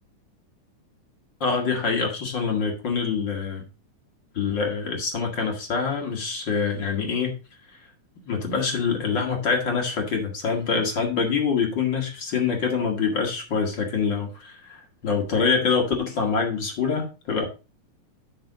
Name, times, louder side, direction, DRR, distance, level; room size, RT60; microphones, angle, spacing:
voice 1, 1.4-3.7 4.3-7.4 8.3-17.4, left 5 dB, 40° left, 2 dB, 2.2 m, -25 dB
9.0 x 6.3 x 4.0 m, 0.31 s
omnidirectional pair, 3.8 m